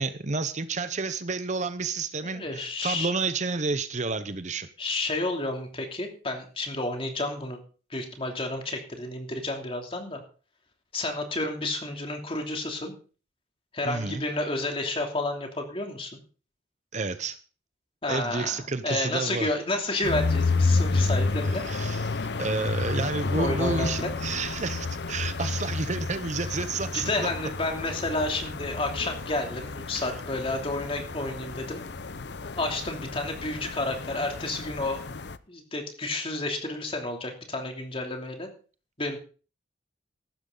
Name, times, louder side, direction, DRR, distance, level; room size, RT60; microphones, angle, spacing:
voice 1, 0.0-4.7 13.8-14.2 16.9-17.4 18.1-19.5 21.0-21.1 21.6-27.3, right 4 dB, 40° right, 12 dB, 0.8 m, -30 dB
voice 2, 2.2-3.1 4.8-7.6 7.9-10.2 10.9-12.9 13.7-16.1 18.0-21.6 23.3-24.1 26.9-31.8 32.6-35.0 35.5-38.5 39.0-39.2, left 2 dB, 30° left, 3 dB, 2.9 m, -31 dB
sound 1, 20.0-35.4, left 3 dB, 65° left, 0.7 m, -30 dB
15.0 x 12.5 x 3.9 m, 0.38 s
head